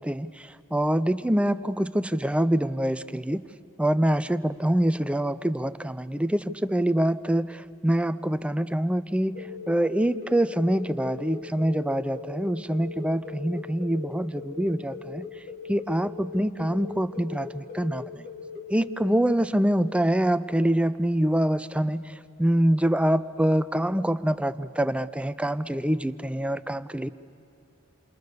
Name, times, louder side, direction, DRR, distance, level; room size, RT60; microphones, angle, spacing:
voice 1, 0.0-3.4 3.8-15.2 15.7-18.0 18.7-22.1 22.4-27.1, right 1 dB, 5° right, 14 dB, 0.5 m, -25 dB
sound 1, 9.3-19.1, left 5 dB, 45° left, 4.8 m, -40 dB
28.0 x 27.5 x 6.8 m, 2.7 s
head